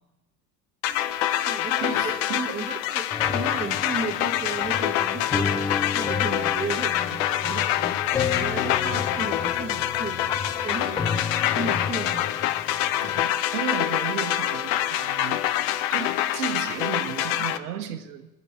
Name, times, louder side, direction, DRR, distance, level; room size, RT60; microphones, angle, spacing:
sound 1, 0.8-17.6, left 13 dB, 50° left, 0.9 m, -26 dB
voice 1, 0.9-5.6 5.9-10.3 10.6-11.3 11.5-12.5, right 4 dB, 20° right, -1 dB, 1.6 m, -35 dB
voice 2, 1.8-2.6 13.0-15.4 15.9-18.3, right 8 dB, 65° right, 5 dB, 1.6 m, -34 dB
sound 2, 3.1-13.2, left 5 dB, 10° left, 0.5 m, -32 dB
23.0 x 8.0 x 4.4 m, 1.0 s
figure-of-eight pair, 75°, 50 cm